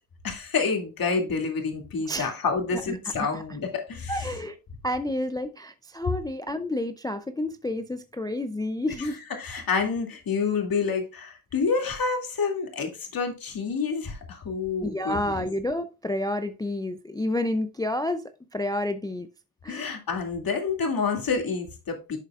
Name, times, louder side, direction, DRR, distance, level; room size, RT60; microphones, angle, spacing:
voice 1, 0.2-4.3 9.0-9.1 9.4-15.4 19.7-22.2, left 5 dB, 45° left, 2.4 m, -28 dB
voice 2, 2.7-3.4 4.1-4.6 4.8-9.2 14.8-19.3 19.6-19.9, left 1 dB, 10° left, 0.4 m, -30 dB
11.0 x 6.7 x 2.4 m
cardioid pair, 105°, 49 cm